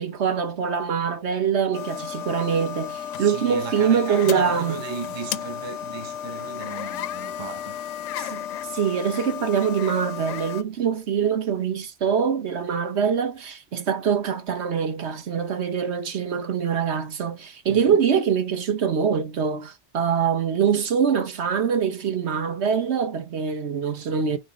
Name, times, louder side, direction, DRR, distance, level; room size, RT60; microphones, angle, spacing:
voice 1, 0.0-4.7 8.2-8.4 8.7-24.4, right 7 dB, 65° right, 1.2 m, -24 dB
sound 1, 1.7-10.6, left 10 dB, 80° left, 0.9 m, -33 dB
voice 2, 3.1-7.8 17.7-17.9, right 5 dB, 25° right, 0.7 m, -36 dB
5.2 x 4.0 x 5.3 m
omnidirectional pair, 1.2 m